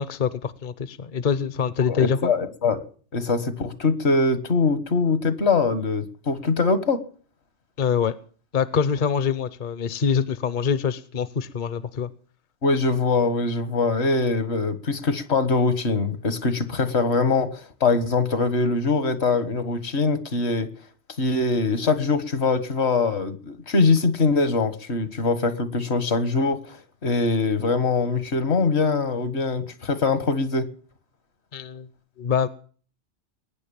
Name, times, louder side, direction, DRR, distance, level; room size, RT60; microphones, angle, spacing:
voice 1, 0.0-2.3 7.8-8.1 8.5-12.1 31.5-31.9 32.2-32.5, left 7 dB, 50° left, 1.0 m, -24 dB
voice 2, 1.9-2.8 3.1-7.0 12.6-20.7 21.2-26.8 27.0-30.7, left 3 dB, 70° left, 1.8 m, -23 dB
21.0 x 9.6 x 7.1 m
omnidirectional pair, 1.2 m